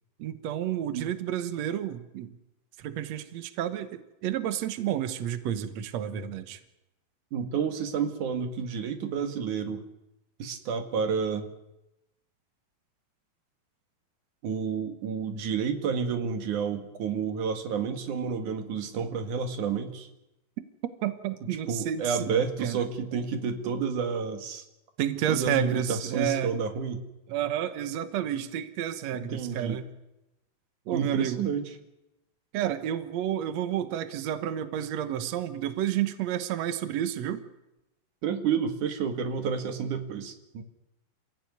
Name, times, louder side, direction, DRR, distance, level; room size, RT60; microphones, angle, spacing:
voice 1, 0.2-2.3 2.8-6.6 21.0-22.9 25.0-26.5 27.3-29.9 30.9-31.5 32.5-37.5, right 10 dB, 80° right, 10 dB, 1.5 m, -30 dB
voice 2, 7.3-9.8 10.4-11.5 14.4-20.1 21.7-24.6 25.3-27.0 29.1-29.8 30.9-31.6 38.2-40.6, right 6 dB, 55° right, 6 dB, 2.9 m, -30 dB
28.5 x 15.5 x 9.5 m, 0.93 s
omnidirectional pair, 4.9 m